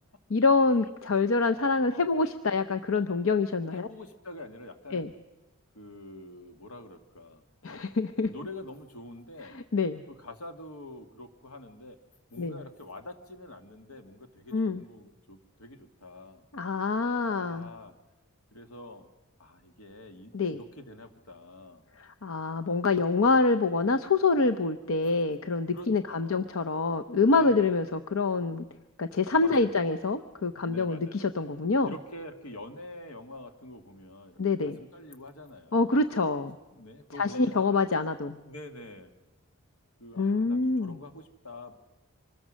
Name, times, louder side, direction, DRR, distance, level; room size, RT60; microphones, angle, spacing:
voice 1, 0.3-3.9 4.9-5.1 7.6-8.3 9.5-10.0 12.4-12.6 14.5-14.8 16.5-17.7 20.3-20.6 22.0-28.6 29.0-31.9 34.4-34.8 35.7-36.5 37.2-38.4 40.2-40.9, left 3 dB, 65° left, 9 dB, 0.7 m, -26 dB
voice 2, 3.7-5.1 5.7-7.4 8.2-9.6 10.1-12.0 12.3-16.4 17.3-18.0 18.5-19.1 19.4-21.8 25.0-25.2 25.7-26.5 27.3-27.9 29.4-30.0 30.6-31.5 31.8-36.1 36.7-38.0 38.4-39.1 40.0-41.7, left 1 dB, 80° left, 7 dB, 1.9 m, -46 dB
25.0 x 20.0 x 6.3 m, 1.1 s
head